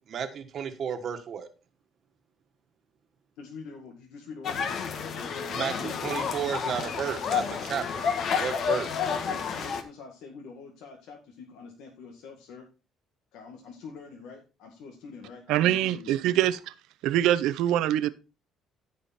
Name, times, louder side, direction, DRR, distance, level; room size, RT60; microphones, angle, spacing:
voice 1, 0.1-1.5 5.5-9.0, right 7 dB, 55° right, 1.5 m, -33 dB
voice 2, 3.4-6.8 8.9-12.7 13.3-16.2, left 5 dB, 80° left, 1.9 m, -46 dB
sound 1, 4.4-9.8, left 6 dB, 60° left, 1.6 m, -30 dB
voice 3, 15.5-16.7 17.0-18.1, right 12 dB, 80° right, 0.7 m, -24 dB
14.5 x 5.0 x 4.3 m
cardioid pair, 95°, 0 cm